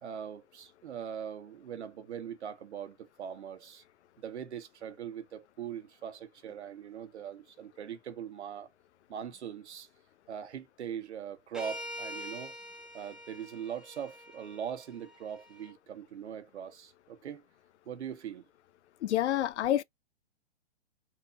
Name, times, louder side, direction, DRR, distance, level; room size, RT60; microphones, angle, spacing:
voice 1, 0.0-3.8 4.2-8.7 9.1-9.9 10.3-12.6 12.9-17.4 17.9-18.4, right 8 dB, 80° right, 1.3 m, -41 dB
sound 1, 11.5-15.7, left 1 dB, ahead, 0.6 m, -45 dB
voice 2, 19.0-19.8, left 12 dB, 80° left, 0.6 m, -28 dB
4.3 x 3.0 x 2.5 m
hypercardioid pair, 145°, 34 cm